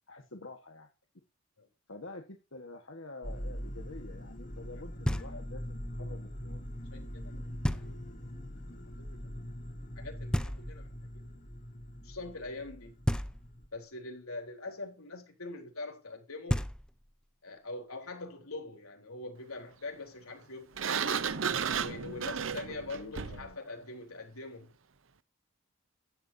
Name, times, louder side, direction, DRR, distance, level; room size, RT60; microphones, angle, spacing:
voice 1, 0.1-0.9 1.9-6.6 22.9-23.6, left 2 dB, 65° left, 1.5 m, -48 dB
sound 1, 3.2-13.7, equal, 35° left, 2.6 m, -42 dB
voice 2, 4.7-5.4 6.0-6.2 6.9-8.2 8.6-9.3 9.7-10.9 11.1-11.2 12.0-13.0 13.7-16.6 17.4-20.8 21.7-24.7, left 2 dB, 85° left, 3.9 m, -44 dB
Knock, 5.0-5.7 7.6-8.3 10.3-11.1 13.0-13.8 16.1-16.2 16.5-17.3, equal, 5° left, 0.5 m, -33 dB
Sliding door, 20.8-23.5, right 6 dB, 65° right, 0.7 m, -33 dB
14.5 x 11.0 x 2.8 m
head